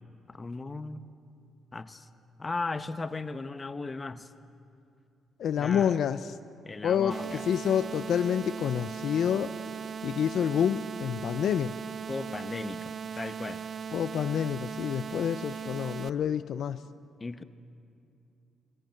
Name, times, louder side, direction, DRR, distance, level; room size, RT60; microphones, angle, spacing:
voice 1, 0.3-1.0 1.7-2.1 2.4-4.3 5.6-6.0 6.6-7.5 12.1-13.6 17.2-17.4, left 3 dB, 25° left, 11 dB, 0.9 m, -36 dB
voice 2, 5.4-6.3 6.8-7.2 7.5-9.5 10.0-11.7 13.9-16.8, left 8 dB, 65° left, 12 dB, 0.5 m, -28 dB
sound 1, 7.1-16.1, right 7 dB, 50° right, 0.5 m, -38 dB
21.0 x 18.0 x 7.7 m, 2.5 s
cardioid pair, 90°, 0 cm